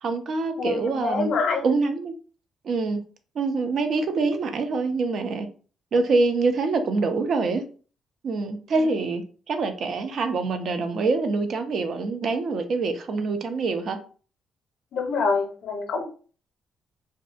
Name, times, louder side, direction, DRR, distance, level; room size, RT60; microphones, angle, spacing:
voice 1, 0.0-1.3 1.6-2.1 2.6-3.0 3.4-5.5 5.9-7.6 8.2-14.0, right 3 dB, 60° right, 0.4 m, -25 dB
voice 2, 0.6-1.6 14.9-16.0, left 4 dB, 70° left, 0.6 m, -26 dB
2.5 x 2.2 x 2.5 m
cardioid pair, 90°, 0 cm